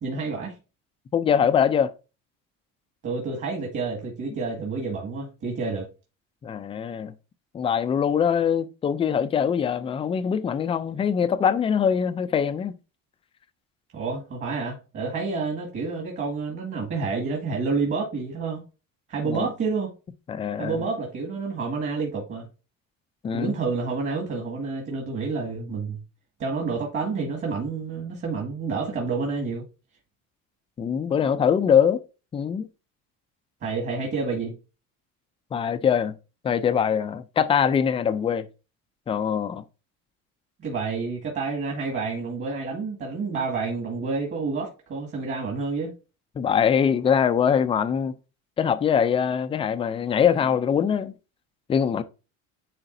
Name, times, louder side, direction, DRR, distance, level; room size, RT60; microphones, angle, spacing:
voice 1, 0.0-0.6 3.0-5.9 13.9-18.6 19.1-19.9 20.6-22.5 23.3-26.0 26.4-29.6 33.6-34.6 40.6-45.9, right 4 dB, 35° right, 2.0 m, -29 dB
voice 2, 1.1-1.9 6.4-7.1 7.5-12.7 19.3-19.5 20.3-20.8 23.2-23.5 30.8-32.0 32.3-32.7 35.5-36.1 36.4-38.5 39.1-39.6 46.4-48.1 48.6-51.1 51.7-52.0, left 7 dB, 15° left, 0.3 m, -23 dB
10.0 x 3.8 x 2.6 m
cardioid pair, 135°, 35 cm